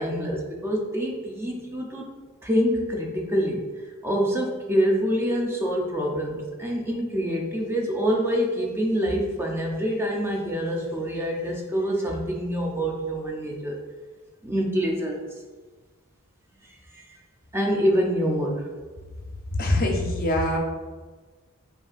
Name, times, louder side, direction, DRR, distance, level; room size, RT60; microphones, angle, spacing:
voice 1, 0.0-2.1 2.4-3.6 4.0-13.8 14.4-15.2 16.6-17.1 17.5-18.7, equal, 10° right, -1 dB, 0.5 m, -26 dB
voice 2, 19.6-20.6, left 1 dB, 40° left, 0 dB, 0.6 m, -23 dB
5.4 x 2.5 x 2.4 m, 1.4 s
head